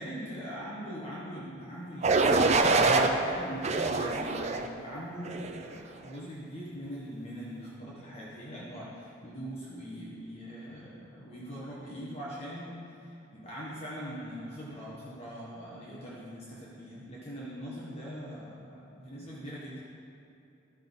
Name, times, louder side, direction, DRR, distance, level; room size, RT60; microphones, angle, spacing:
voice 1, 0.0-19.8, equal, 35° left, -7 dB, 1.3 m, -41 dB
sound 1, 2.0-3.1 3.6-4.7 5.2-5.6, right 3 dB, 35° right, 0.5 m, -25 dB
12.5 x 5.5 x 4.0 m, 2.8 s
head